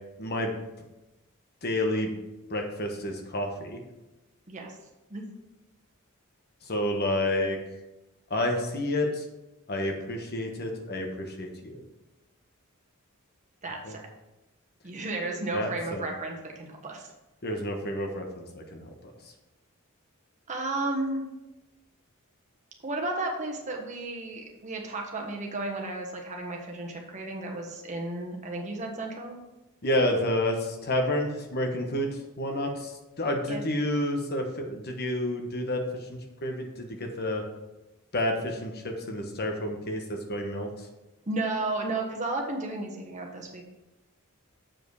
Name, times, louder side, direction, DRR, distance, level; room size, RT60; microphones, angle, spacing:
voice 1, 0.2-0.5 1.6-2.1 2.5-3.8 6.7-7.6 8.3-9.2 9.7-11.8 13.8-13.9 15.5-16.1 17.4-18.9 29.8-32.1 32.4-32.9 33.2-35.8 36.4-37.4 38.1-40.7, left 1 dB, 45° left, 3 dB, 1.1 m, -29 dB
voice 2, 13.6-14.0 14.8-17.1 20.5-21.2 22.8-29.4 33.5-33.7 41.3-43.6, right 2 dB, 35° right, 1 dB, 1.2 m, -33 dB
7.6 x 5.0 x 4.7 m, 0.99 s
head